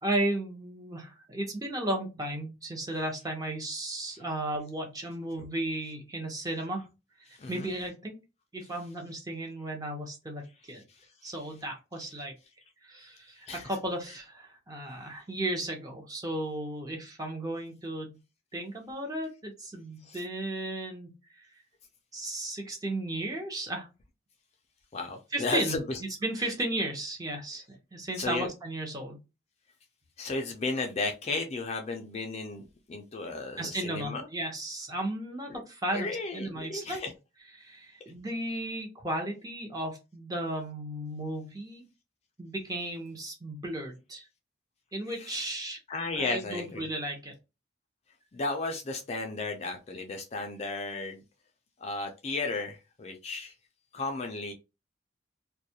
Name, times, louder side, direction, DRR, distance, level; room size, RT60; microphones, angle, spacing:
voice 1, 0.0-6.8 7.3-8.2 8.5-10.8 11.2-12.3 12.8-18.2 18.5-21.1 22.1-23.9 25.3-25.8 26.2-29.2 33.6-36.1 36.3-37.0 37.5-41.8 42.4-44.3 44.9-45.8 46.2-47.3, right 1 dB, 20° right, 0.6 m, -34 dB
voice 2, 24.9-26.0 28.2-28.5 30.2-34.3 35.5-35.6 35.9-37.1 45.1-45.5 45.9-46.9 48.3-51.2 51.8-53.5 53.9-54.5, left 3 dB, 35° left, 0.4 m, -34 dB
2.3 x 2.1 x 2.7 m
head